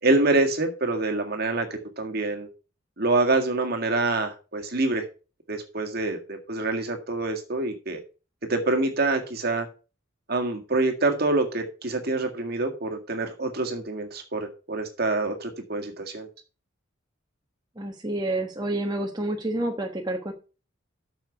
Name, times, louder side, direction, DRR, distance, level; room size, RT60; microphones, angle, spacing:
voice 1, 0.0-2.5 3.0-5.0 5.5-8.0 8.4-9.7 10.3-16.3, right 2 dB, 50° right, 5 dB, 1.9 m, -26 dB
voice 2, 17.8-20.3, right 1 dB, 20° right, 2 dB, 1.2 m, -29 dB
9.1 x 6.7 x 5.9 m, 0.34 s
head